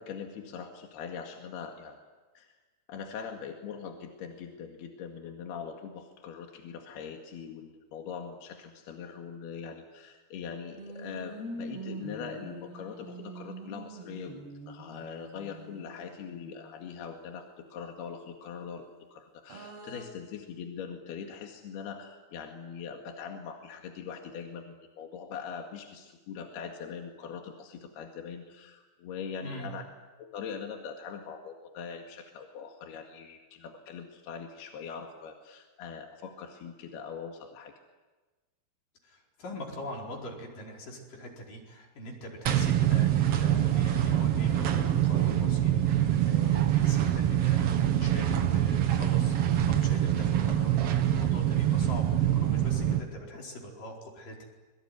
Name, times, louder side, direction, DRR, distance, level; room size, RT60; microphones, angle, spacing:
voice 1, 0.0-2.0 2.4-2.5 2.9-14.4 14.7-18.9 19.1-29.8 30.2-37.7, left 6 dB, 85° left, 3 dB, 4.0 m, -42 dB
sound 1, 10.8-16.8 19.5-20.1, right 2 dB, 85° right, 8.0 m, -44 dB
voice 2, 29.4-29.7 39.0-54.4, left 1 dB, 60° left, -1 dB, 6.3 m, -43 dB
sound 2, 42.5-53.0, right 11 dB, 55° right, 1.7 m, -25 dB
27.0 x 23.0 x 9.5 m, 1.2 s
omnidirectional pair, 4.5 m